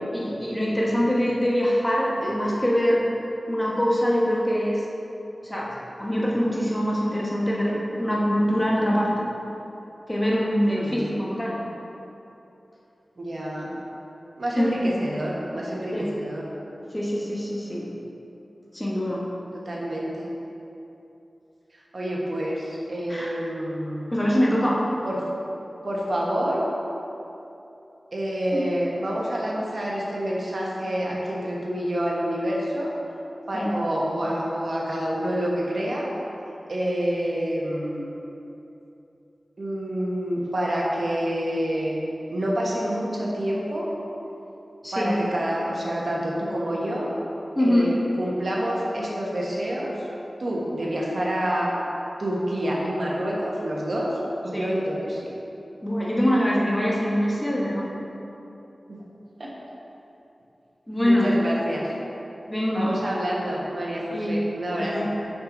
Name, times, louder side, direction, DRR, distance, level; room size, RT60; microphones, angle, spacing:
voice 1, 0.1-3.0 3.5-4.8 5.4-5.7 6.0-9.3 10.1-11.6 14.6-15.0 15.9-16.2 16.9-17.9 18.7-19.2 23.1-23.3 24.1-24.8 28.5-28.7 33.5-33.7 44.8-45.2 47.5-47.9 54.5-54.7 55.8-57.9 60.9-61.3 62.5-63.0 64.1-64.4 64.8-65.1, equal, 15° left, -4 dB, 1.2 m, -24 dB
voice 2, 10.7-11.2 13.2-13.7 14.4-16.4 19.6-20.3 21.9-24.3 25.0-25.2 25.8-26.6 28.1-32.9 33.5-36.1 36.7-38.1 39.6-42.0 42.3-43.9 44.9-47.1 47.6-50.1 50.4-51.7 52.2-54.1 54.4-55.3 58.9-59.0 59.4-59.5 61.0-61.9 62.7-65.1, equal, 60° right, -4 dB, 1.2 m, -28 dB
6.0 x 5.3 x 3.9 m, 2.9 s
wide cardioid pair, 65°, 0 cm